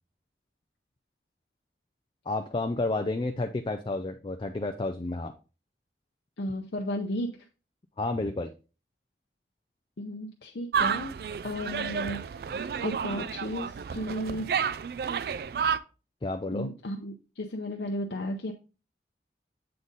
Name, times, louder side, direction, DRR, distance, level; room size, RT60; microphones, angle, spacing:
voice 1, 2.3-5.3 8.0-8.5 16.2-16.7, left 2 dB, 30° left, 6 dB, 0.4 m, -31 dB
voice 2, 6.4-7.4 10.0-11.1 11.4-12.4 12.8-14.5 16.5-18.5, left 1 dB, 75° left, 1 dB, 0.6 m, -34 dB
sound 1, 10.7-15.8, right 7 dB, 55° right, 0.3 m, -31 dB
7.7 x 4.0 x 3.7 m, 0.33 s
head